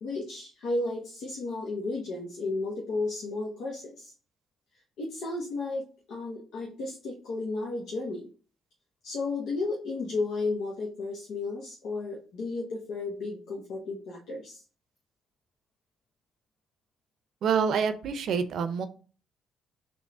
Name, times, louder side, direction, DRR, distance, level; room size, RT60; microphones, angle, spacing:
voice 1, 0.0-4.1 5.0-8.3 9.0-14.6, left 3 dB, 80° left, -1 dB, 1.0 m, -33 dB
voice 2, 17.4-18.9, right 6 dB, 70° right, 10 dB, 0.6 m, -27 dB
4.0 x 3.0 x 3.6 m, 0.38 s
cardioid pair, 90°, 0 cm